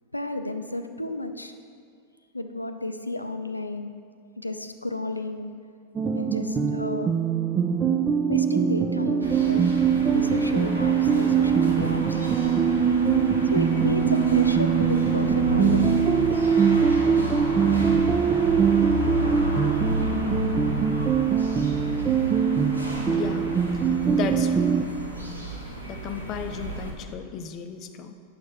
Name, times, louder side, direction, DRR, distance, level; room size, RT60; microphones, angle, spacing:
voice 1, 0.1-1.5 2.3-3.9 4.4-5.5 6.1-7.2 8.3-9.8 10.1-12.5 13.5-16.2, left 2 dB, 85° left, 8 dB, 0.4 m, -32 dB
sound 1, 5.9-24.8, right 7 dB, 25° right, 0.4 m, -22 dB
sound 2, 9.2-26.9, equal, 90° right, 1.1 m, -32 dB
voice 2, 23.1-23.5 24.1-24.7 25.9-28.1, left 7 dB, 35° left, 8 dB, 0.6 m, -34 dB
9.5 x 6.5 x 3.4 m, 2.2 s
figure-of-eight pair, 90°, 0 cm